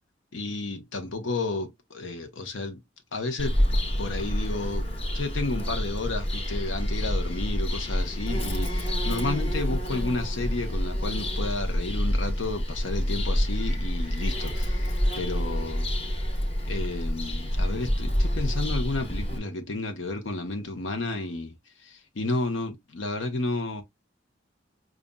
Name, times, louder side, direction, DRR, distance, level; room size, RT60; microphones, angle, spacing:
voice 1, 0.3-2.8 3.1-3.6 4.0-15.9 16.6-21.5 21.8-23.8, left 2 dB, 90° left, 0.9 m, -32 dB
Bird vocalization bird call bird song, 3.4-19.4, equal, 35° left, 1.0 m, -28 dB
5.2 x 2.5 x 2.2 m
head